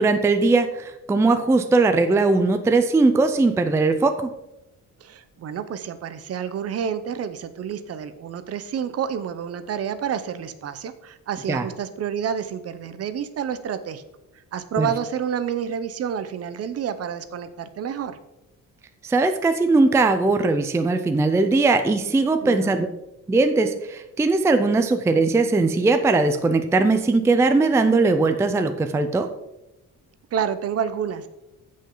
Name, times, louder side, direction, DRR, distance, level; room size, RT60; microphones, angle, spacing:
voice 1, 0.0-4.3 11.5-11.6 14.8-14.9 19.0-22.9 23.3-29.3, right 3 dB, 10° right, 8 dB, 0.4 m, -19 dB
voice 2, 5.0-14.0 14.5-18.2 22.4-22.7 30.3-31.3, right 8 dB, 45° right, 12 dB, 0.7 m, -29 dB
15.5 x 5.4 x 3.8 m, 0.91 s
cardioid pair, 165°, 33 cm